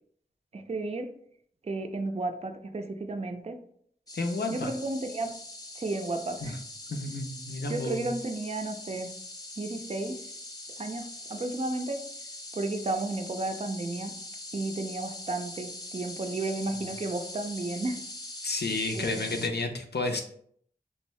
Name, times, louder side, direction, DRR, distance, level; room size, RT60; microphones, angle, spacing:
voice 1, 0.5-1.1 1.6-3.6 4.5-5.3 5.8-6.6 7.7-9.1 9.6-10.2 10.8-12.0 12.5-14.1 14.5-18.0 18.9-19.3, right 2 dB, 40° right, 6 dB, 0.4 m, -33 dB
voice 2, 4.1-4.7 6.4-6.6 6.9-8.1 18.4-20.2, left 2 dB, 85° left, 4 dB, 0.5 m, -31 dB
sound 1, 4.1-19.5, left 1 dB, 25° left, 0.6 m, -42 dB
3.4 x 2.6 x 3.1 m, 0.63 s
wide cardioid pair, 40°, 17 cm